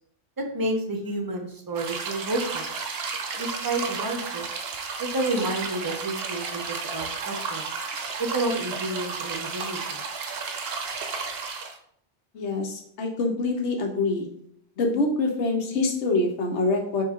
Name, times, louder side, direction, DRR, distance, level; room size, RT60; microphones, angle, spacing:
voice 1, 0.5-2.7 3.4-4.5 5.0-7.7 8.2-10.0, right 2 dB, 25° right, 2 dB, 0.5 m, -30 dB
sound 1, 1.7-11.8, right 5 dB, 65° right, 0.8 m, -33 dB
voice 2, 12.3-14.3 14.8-17.0, left 3 dB, 75° left, 2 dB, 1.1 m, -25 dB
4.8 x 3.0 x 3.6 m, 0.67 s
omnidirectional pair, 1.2 m